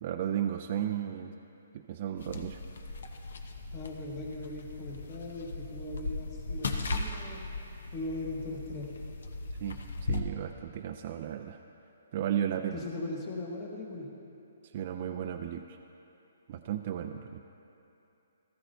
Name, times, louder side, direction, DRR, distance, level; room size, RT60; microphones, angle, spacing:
voice 1, 0.0-1.3 1.7-2.6 9.6-11.6 12.1-12.8 14.6-15.8 16.5-17.4, right 10 dB, 40° right, 5 dB, 0.4 m, -34 dB
sound 1, 2.2-10.2, left 3 dB, 75° left, 0.9 m, -38 dB
voice 2, 3.7-7.4 7.9-8.9 12.7-14.1, left 2 dB, 25° left, -1 dB, 1.4 m, -39 dB
14.0 x 14.0 x 2.7 m, 2.9 s
hypercardioid pair, 160°, 0 cm